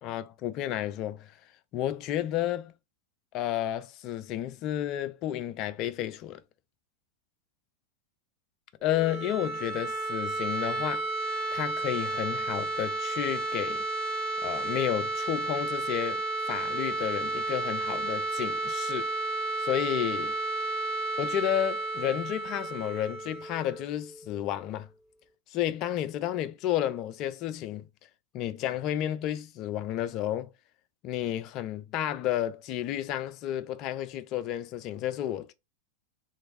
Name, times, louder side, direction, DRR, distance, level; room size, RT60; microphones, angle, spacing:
voice 1, 0.0-1.4 1.7-2.7 3.3-6.4 8.8-11.1 11.5-13.8 14.4-19.1 19.6-20.3 21.2-24.9 25.5-27.9 28.3-30.5 31.0-35.5, left 12 dB, 40° left, 0.4 m, -31 dB
sound 1, 8.8-24.6, right 2 dB, 10° left, 1.6 m, -32 dB
3.0 x 2.6 x 2.5 m
figure-of-eight pair, 90°, 0 cm